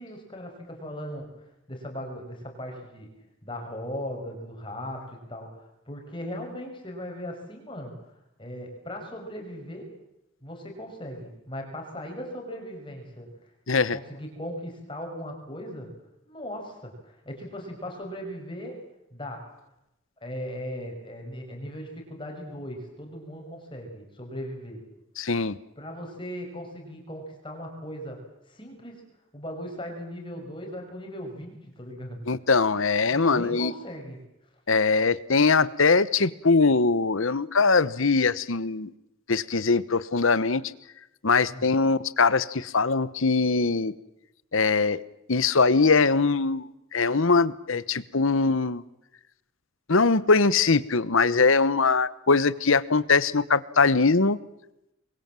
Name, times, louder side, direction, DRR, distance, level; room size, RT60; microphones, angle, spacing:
voice 1, 0.0-1.3 1.7-3.1 3.4-8.0 8.4-9.9 10.4-13.3 13.9-15.9 16.3-18.8 19.1-19.5 20.2-24.8 25.8-29.0 29.3-32.2 33.1-34.2 41.5-41.7, equal, 25° left, 2 dB, 6.0 m, -38 dB
voice 2, 13.7-14.0 25.2-25.6 32.3-33.7 34.7-38.9 39.3-40.6 41.2-43.9 44.5-45.0 45.3-48.8 49.9-54.4, left 4 dB, 70° left, 17 dB, 1.0 m, -22 dB
27.5 x 23.0 x 7.6 m, 0.87 s
head